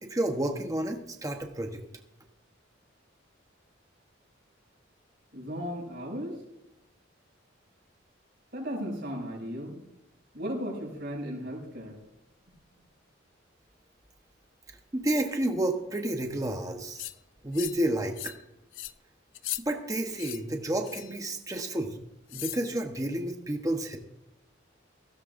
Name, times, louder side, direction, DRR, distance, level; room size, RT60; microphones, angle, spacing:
voice 1, 0.0-1.8 14.9-17.0 17.4-18.3 19.6-22.0 22.3-24.0, right 1 dB, 15° right, 4 dB, 1.1 m, -30 dB
voice 2, 5.3-6.4 8.5-9.8 10.3-12.0, equal, 60° right, -2 dB, 6.1 m, -35 dB
sound 1, 17.0-17.1 17.5-17.8 18.2-18.4 18.7-18.9 19.3-19.6 20.1-20.4 20.8-21.2 22.3-22.6, left 15 dB, 90° left, 0.5 m, -38 dB
16.5 x 16.0 x 2.6 m, 0.88 s
head